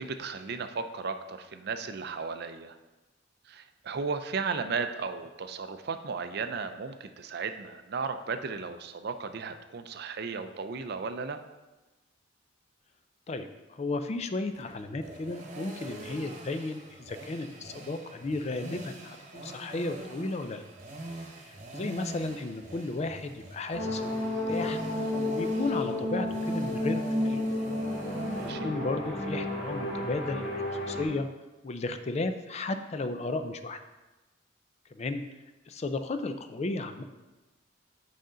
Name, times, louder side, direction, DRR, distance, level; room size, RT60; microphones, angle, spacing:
voice 1, 0.0-2.8 3.5-11.4 28.3-28.8, right 5 dB, 55° right, 9 dB, 0.5 m, -35 dB
voice 2, 13.3-20.6 21.4-24.8 25.3-27.4 28.4-30.6 30.9-31.3 31.6-33.8 34.9-35.2 35.7-37.0, left 2 dB, 35° left, 9 dB, 0.4 m, -34 dB
sound 1, 14.5-28.5, right 2 dB, 35° right, 1.1 m, -44 dB
sound 2, 23.7-31.1, left 1 dB, 80° left, 2.4 m, -31 dB
7.8 x 5.0 x 3.8 m, 1.1 s
head